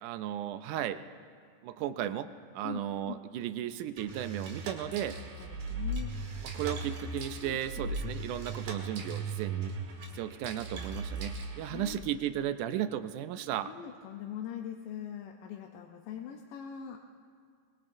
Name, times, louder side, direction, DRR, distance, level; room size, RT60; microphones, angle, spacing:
voice 1, 0.0-1.0 1.6-2.3 2.5-5.2 6.4-9.7 10.1-13.7, right 11 dB, 80° right, 11 dB, 2.0 m, -35 dB
voice 2, 2.6-3.2 5.4-6.1 7.4-7.8 11.6-12.0 13.7-17.0, left 9 dB, 90° left, 2 dB, 2.4 m, -42 dB
sound 1, 4.0-12.0, right 3 dB, 65° right, 2.9 m, -38 dB
24.0 x 22.0 x 2.6 m, 2.1 s
omnidirectional pair, 3.7 m